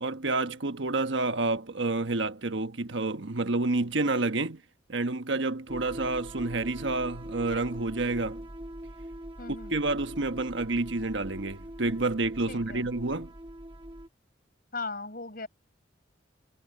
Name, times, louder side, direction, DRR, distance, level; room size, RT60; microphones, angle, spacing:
voice 1, 0.0-4.6 4.9-8.4 9.7-13.3, right 2 dB, 75° right, 1.3 m, -29 dB
sound 1, 5.7-14.1, right 1 dB, 25° right, 2.5 m, -42 dB
voice 2, 9.4-9.8 12.5-12.9 14.7-15.5, left 3 dB, 50° left, 6.7 m, -38 dB
head